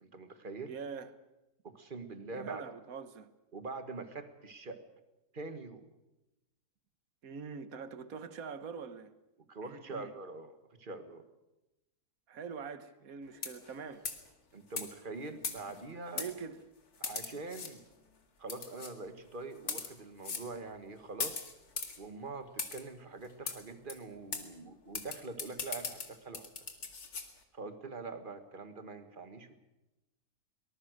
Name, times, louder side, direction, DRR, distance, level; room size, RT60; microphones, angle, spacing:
voice 1, 0.0-0.7 1.6-2.7 3.5-4.8 5.3-5.9 9.5-11.2 14.5-16.3 17.0-17.8 18.4-21.4 22.0-26.5 27.5-29.6, right 3 dB, 35° right, 1.8 m, -44 dB
voice 2, 0.7-1.1 2.3-3.3 7.2-9.1 9.6-10.1 12.3-14.1 16.1-16.6, right 6 dB, 70° right, 1.7 m, -44 dB
sound 1, 13.3-13.7 14.0-14.3 14.8-14.9 15.4-15.8 16.2-16.3 17.0-17.7 18.5-18.9 19.6-19.9 20.2-20.5 21.2-22.0 22.6-22.8 23.5-23.6 23.9-24.0 24.3-24.4 24.9-27.3, left 5 dB, 80° left, 2.6 m, -38 dB
23.5 x 19.5 x 6.6 m
omnidirectional pair, 1.6 m